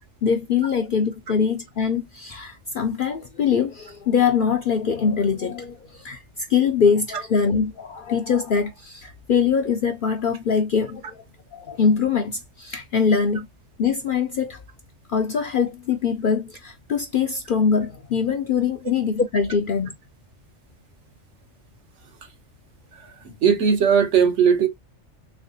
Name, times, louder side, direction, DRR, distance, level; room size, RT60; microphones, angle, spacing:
voice 1, 0.0-11.2 11.5-13.5 13.8-14.6 15.1-19.9, left 6 dB, 60° left, 0.6 m, -23 dB
voice 2, 23.4-24.7, right 7 dB, 70° right, 1.2 m, -18 dB
3.5 x 3.2 x 2.6 m
omnidirectional pair, 1.3 m